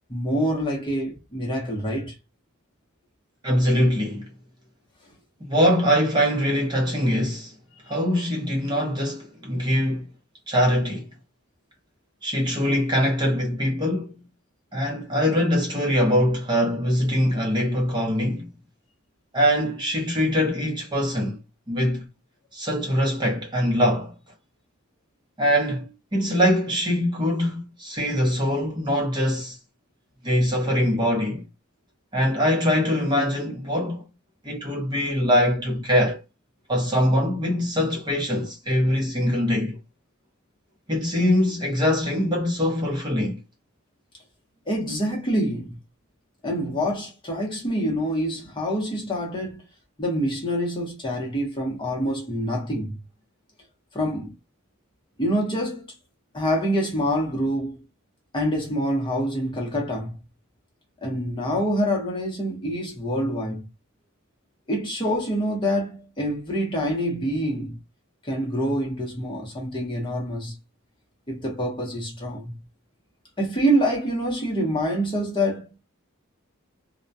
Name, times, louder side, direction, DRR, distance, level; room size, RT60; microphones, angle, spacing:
voice 1, 0.1-2.2 44.7-45.8 46.4-49.6 50.0-53.0 53.9-54.3 55.2-55.9 56.3-57.8 58.3-60.2 61.0-63.7 64.7-67.8 68.2-70.6 71.3-72.6 73.4-75.7, equal, 25° left, 0.8 m, -26 dB
voice 2, 3.4-4.3 5.5-7.5 7.9-10.0 10.5-11.1 12.2-14.1 14.7-18.5 19.3-21.4 21.7-22.1 22.5-24.1 25.4-29.6 30.2-31.4 32.1-34.0 34.4-36.2 36.7-39.8 40.9-43.4, equal, 20° right, 0.7 m, -23 dB
2.2 x 2.1 x 2.6 m
head